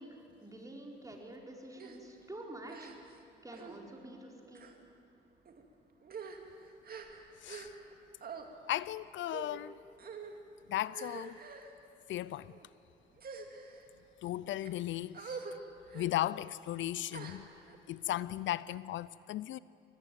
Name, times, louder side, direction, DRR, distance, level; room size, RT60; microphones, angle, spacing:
voice 1, 0.0-2.9 3.4-4.7, right 1 dB, 15° right, 4.2 m, -48 dB
sound 1, 1.8-2.0 2.7-3.2 3.5-3.8 4.5-4.8 5.5-5.6 6.0-7.9 8.2-8.5 9.3-9.6 10.0-10.4 10.9-11.7 12.4-12.7 13.1-13.8 14.4-14.7 15.1-15.6 15.9-16.1 17.1-17.8, right 5 dB, 50° right, 2.6 m, -46 dB
voice 2, 7.4-7.7 8.7-9.7 10.7-11.4 12.1-12.5 14.2-15.4 15.9-17.5 17.9-19.6, left 13 dB, 75° left, 0.5 m, -36 dB
22.5 x 18.5 x 9.2 m
cardioid pair, 90°, 20 cm